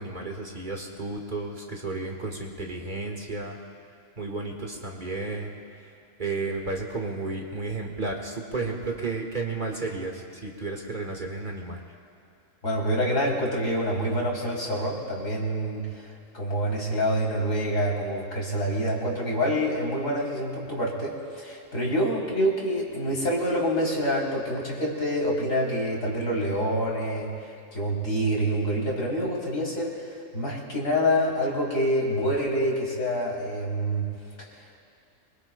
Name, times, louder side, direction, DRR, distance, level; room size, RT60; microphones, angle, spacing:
voice 1, 0.0-3.6 4.2-5.6 6.2-11.8, right 3 dB, 35° right, 0 dB, 1.8 m, -32 dB
voice 2, 12.6-16.1 16.3-27.3 27.7-30.0 30.3-34.0, equal, 80° left, -4 dB, 3.9 m, -26 dB
25.5 x 24.0 x 2.2 m, 2.5 s
omnidirectional pair, 1.4 m